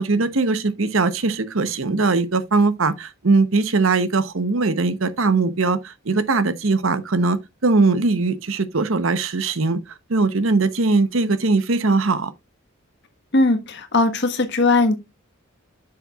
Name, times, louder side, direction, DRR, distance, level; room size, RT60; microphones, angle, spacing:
voice 1, 0.0-9.8 10.1-12.3, right 3 dB, 70° right, 0.9 m, -20 dB
voice 2, 13.3-15.0, left 2 dB, 55° left, 1.4 m, -19 dB
9.6 x 6.6 x 2.4 m
head